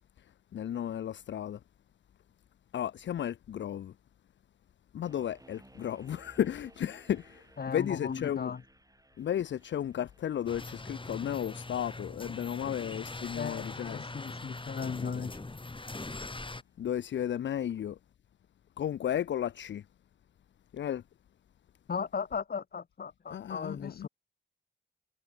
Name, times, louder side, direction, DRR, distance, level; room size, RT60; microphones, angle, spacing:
voice 1, 0.5-1.6 2.7-3.9 4.9-8.5 9.2-14.0 16.8-18.0 18.8-19.8 20.7-21.0 23.3-24.1, left 10 dB, 65° left, 0.6 m, -34 dB
sound 1, 5.1-16.1, right 1 dB, 15° right, 6.8 m, -61 dB
voice 2, 7.6-8.6 13.3-15.5 21.9-24.1, left 6 dB, 50° left, 1.2 m, -37 dB
sound 2, 10.5-16.6, left 2 dB, 25° left, 2.0 m, -42 dB
supercardioid pair, 45°, 20 cm